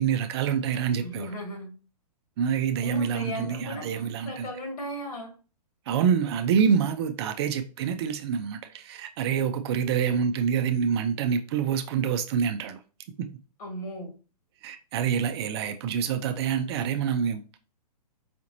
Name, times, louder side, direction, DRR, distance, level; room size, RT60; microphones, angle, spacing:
voice 1, 0.0-1.3 2.4-4.5 5.9-12.8 13.2-13.3 14.6-17.6, right 7 dB, 40° right, 0.5 m, -26 dB
voice 2, 1.0-1.7 2.8-5.3 13.6-14.1, equal, 60° left, 2.0 m, -36 dB
5.0 x 2.9 x 2.6 m
hypercardioid pair, 130°, 21 cm